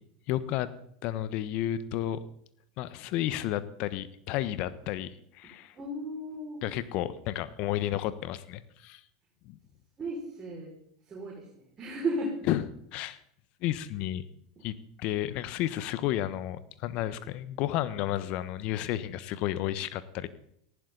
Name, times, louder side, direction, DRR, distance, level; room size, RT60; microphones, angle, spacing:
voice 1, 0.3-0.7 1.0-2.2 2.8-5.7 6.6-9.0 9.4-9.6 12.5-12.6 12.9-13.2 13.6-14.2 14.6-20.3, left 13 dB, 50° left, 14 dB, 1.3 m, -32 dB
voice 2, 5.4-6.6 10.0-10.7 11.1-12.4 14.6-14.7, right 1 dB, 25° right, -4 dB, 5.8 m, -35 dB
18.5 x 15.5 x 4.1 m, 0.72 s
hypercardioid pair, 85°, 2 cm